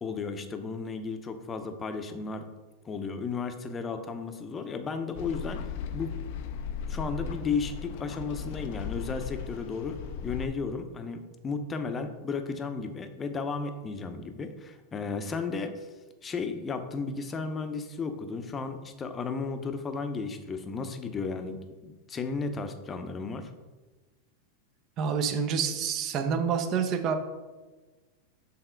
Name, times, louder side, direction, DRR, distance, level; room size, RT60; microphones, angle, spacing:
voice 1, 0.0-2.5 2.8-5.6 5.9-6.1 6.9-15.9 16.2-23.5, left 4 dB, 25° left, 7 dB, 0.7 m, -34 dB
sound 1, 5.1-10.5, left 7 dB, 60° left, 0.4 m, -37 dB
voice 2, 25.0-27.2, right 6 dB, 40° right, 6 dB, 0.7 m, -27 dB
6.6 x 3.5 x 4.5 m, 1.2 s
hypercardioid pair, 115°, 0 cm